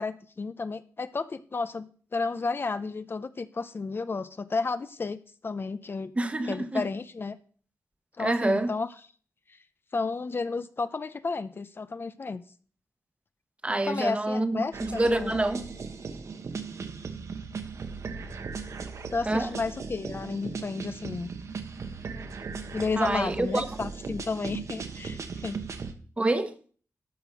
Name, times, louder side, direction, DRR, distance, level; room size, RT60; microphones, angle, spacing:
voice 1, 0.0-6.1 6.5-7.4 8.2-8.9 9.5-9.6 9.9-12.4 13.8-15.3 19.1-21.3 22.7-25.6, left 4 dB, 40° left, 0.6 m, -32 dB
voice 2, 6.2-6.8 8.2-8.7 13.6-14.6 15.0-15.7 19.3-19.5 23.0-23.6 26.2-26.5, right 2 dB, 20° right, 1.1 m, -26 dB
sound 1, 14.7-25.9, right 5 dB, 65° right, 1.2 m, -38 dB
12.5 x 5.0 x 6.3 m
wide cardioid pair, 95°, 6 cm